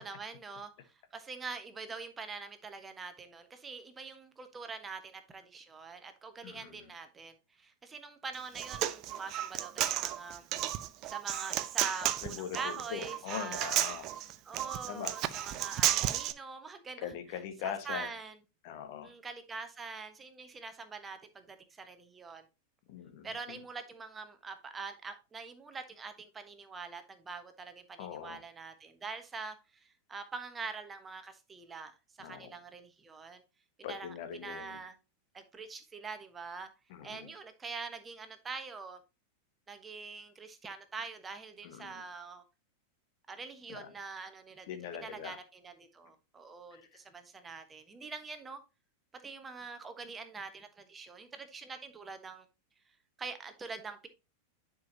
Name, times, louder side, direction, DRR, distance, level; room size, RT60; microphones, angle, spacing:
voice 1, 0.0-10.5 11.0-13.8 14.4-18.4 19.0-22.4 23.2-31.9 32.2-33.4 33.8-34.9 35.3-36.7 37.0-39.0 39.7-42.4 43.3-48.6 49.1-52.5 53.2-54.1, right 4 dB, 15° right, 1.3 m, -44 dB
voice 2, 6.4-6.9 12.2-14.1 14.9-15.1 17.0-18.1 18.6-19.1 22.9-23.6 28.0-28.4 32.2-32.5 33.8-34.8 36.9-37.3 41.6-42.0 43.7-43.9 44.7-45.4 46.7-46.8, left 8 dB, 50° left, 1.4 m, -42 dB
Human voice, 8.3-16.3, right 12 dB, 40° right, 0.6 m, -33 dB
10.5 x 5.4 x 2.8 m
figure-of-eight pair, 90°, 0 cm